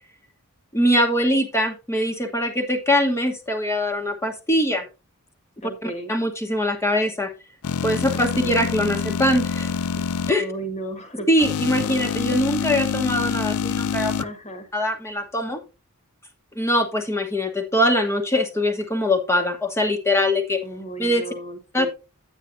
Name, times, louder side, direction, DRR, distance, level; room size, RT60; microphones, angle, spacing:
voice 1, 0.7-4.8 5.8-7.3 7.8-9.7 10.3-10.4 11.3-14.1 14.7-15.6 16.5-20.6 21.0-21.2 21.7-21.9, left 1 dB, 10° left, 5 dB, 1.2 m, -22 dB
voice 2, 5.6-6.1 8.1-8.5 10.4-11.3 12.0-12.1 14.2-14.7 20.6-21.9, right 2 dB, 30° left, 7 dB, 1.6 m, -35 dB
sound 1, 7.6-10.3 11.4-14.2, left 6 dB, 75° left, 0.4 m, -26 dB
9.3 x 9.0 x 2.6 m, 0.28 s
head